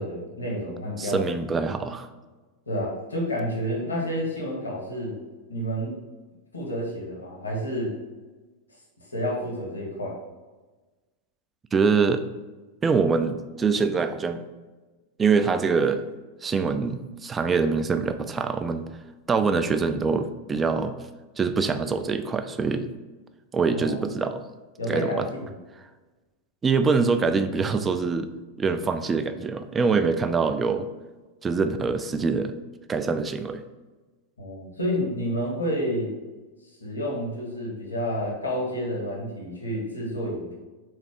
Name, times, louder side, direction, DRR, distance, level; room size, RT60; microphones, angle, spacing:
voice 1, 0.0-1.2 2.7-5.2 5.5-6.0 6.5-7.9 9.1-10.2 23.7-24.0 24.8-25.5 34.4-36.1 36.8-40.6, equal, 75° left, -2 dB, 1.1 m, -29 dB
voice 2, 1.0-2.1 11.7-12.2 12.8-14.4 15.2-16.0 16.4-18.8 19.3-20.9 21.4-22.9 23.5-24.4 24.9-25.3 26.6-28.3 28.6-30.9 31.4-32.5 32.9-33.6, right 5 dB, 20° right, 9 dB, 0.3 m, -24 dB
4.0 x 3.2 x 3.5 m, 1.2 s
figure-of-eight pair, 90°, 0 cm